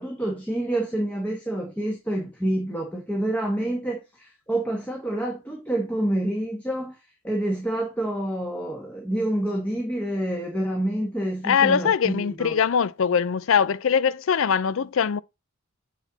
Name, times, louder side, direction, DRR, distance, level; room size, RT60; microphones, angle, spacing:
voice 1, 0.0-7.0 7.2-12.5, right 1 dB, 5° left, 1.3 m, -28 dB
voice 2, 11.4-15.2, left 7 dB, 60° left, 0.4 m, -22 dB
8.1 x 4.2 x 3.9 m
head